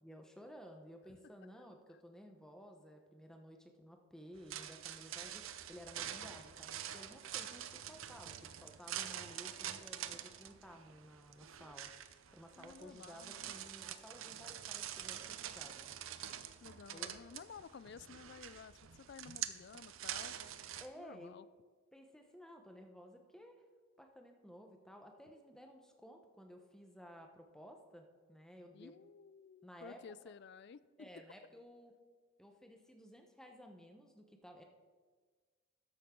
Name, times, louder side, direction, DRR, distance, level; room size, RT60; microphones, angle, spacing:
voice 1, 0.0-11.9 12.3-16.0 16.9-17.1 20.8-21.4 21.9-23.7 24.0-28.9 29.6-30.3 31.0-31.9 32.4-34.6, equal, 5° left, 4 dB, 0.9 m, -55 dB
sound 1, 4.4-20.9, right 10 dB, 70° right, 0.6 m, -46 dB
voice 2, 12.6-13.5 16.6-20.4 21.0-21.5 28.7-31.2, left 6 dB, 50° left, 17 dB, 0.4 m, -54 dB
13.0 x 10.5 x 3.8 m, 1.5 s
head